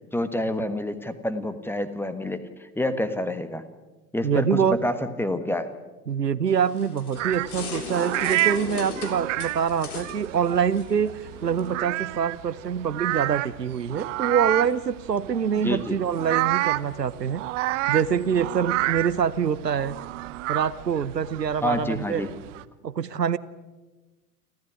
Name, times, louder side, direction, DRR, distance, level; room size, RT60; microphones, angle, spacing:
voice 1, 0.1-3.6 4.1-5.7 15.6-15.9 21.6-22.3, left 1 dB, 5° left, 12 dB, 1.5 m, -28 dB
voice 2, 4.2-4.8 6.1-11.1 11.4-17.4 17.9-19.9 20.5-22.3 22.8-23.4, right 7 dB, 85° right, 17 dB, 0.8 m, -25 dB
sound 1, 6.5-11.7, left 5 dB, 65° left, 3.6 m, -38 dB
sound 2, 7.2-22.6, right 17 dB, 50° right, 1.0 m, -30 dB
29.5 x 13.0 x 9.7 m, 1.2 s
figure-of-eight pair, 85°, 48 cm